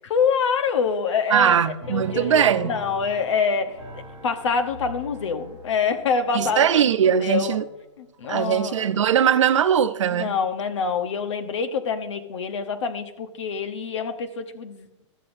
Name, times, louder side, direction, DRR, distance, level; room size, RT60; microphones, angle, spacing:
voice 1, 0.0-3.8 4.2-6.7 7.2-7.6 8.0-8.9 10.1-14.9, left 5 dB, 75° left, 1.0 m, -26 dB
voice 2, 1.3-2.7 6.3-7.6 8.3-10.3, right 8 dB, 80° right, 0.8 m, -20 dB
sound 1, 1.8-9.0 9.5-10.1, right 1 dB, 5° left, 2.4 m, -42 dB
14.0 x 7.8 x 2.6 m
hypercardioid pair, 165°, 16 cm